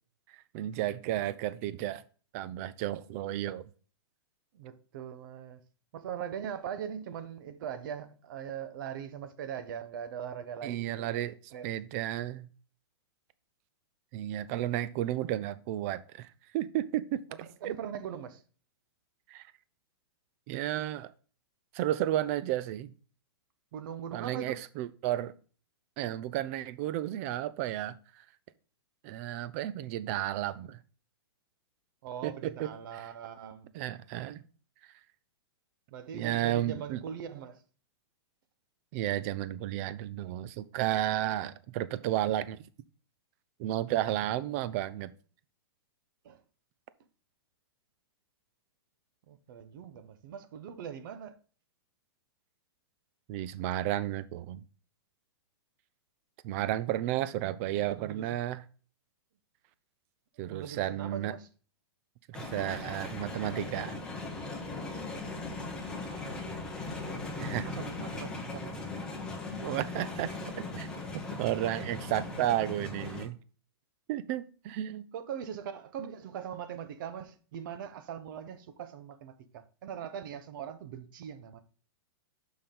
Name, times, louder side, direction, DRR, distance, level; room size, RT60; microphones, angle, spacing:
voice 1, 0.3-2.0 2.3-3.6 10.6-11.3 11.6-12.5 14.1-17.2 17.6-17.7 19.3-19.5 20.5-21.1 21.7-22.9 24.1-25.3 26.0-28.2 29.0-30.8 32.2-33.1 33.7-34.4 36.1-37.0 38.9-42.6 43.6-45.1 53.3-54.6 56.4-58.6 60.4-61.3 62.3-64.0 67.4-67.7 69.6-73.4 74.1-75.1, right 13 dB, 35° right, 0.5 m, -33 dB
voice 2, 4.5-5.6 5.9-11.7 17.4-18.4 23.7-24.6 32.0-33.7 35.9-37.6 46.2-46.4 49.3-51.4 57.2-58.4 60.5-61.5 66.1-66.2 66.8-68.8 75.1-81.6, right 8 dB, 50° right, 1.0 m, -41 dB
sound 1, 62.3-73.2, left 3 dB, 5° left, 1.4 m, -39 dB
6.8 x 5.6 x 3.7 m
hypercardioid pair, 155°, 14 cm